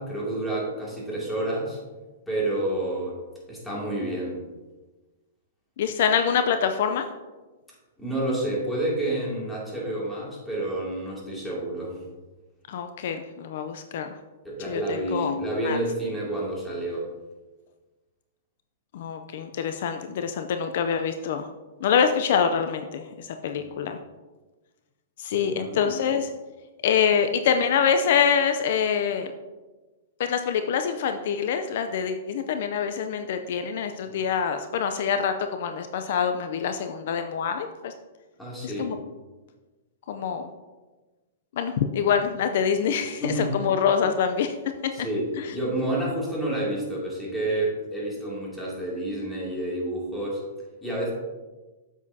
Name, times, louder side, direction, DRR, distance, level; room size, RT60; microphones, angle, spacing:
voice 1, 0.0-1.8 2.3-3.2 3.5-4.4 8.0-12.0 14.4-17.1 23.5-23.7 25.3-26.0 38.4-38.9 43.2-43.6 44.9-50.4 50.8-51.1, right 1 dB, 5° left, -6 dB, 2.6 m, -29 dB
voice 2, 5.8-7.1 12.7-14.2 14.7-15.3 15.6-15.8 18.9-21.5 21.8-24.0 25.2-26.3 26.8-29.3 30.2-37.9 38.6-39.0 40.1-40.5 41.6-44.5 44.8-44.9 45.4-45.5, left 7 dB, 60° left, 7 dB, 0.5 m, -25 dB
8.5 x 7.2 x 2.8 m, 1.2 s
hypercardioid pair, 140°, 0 cm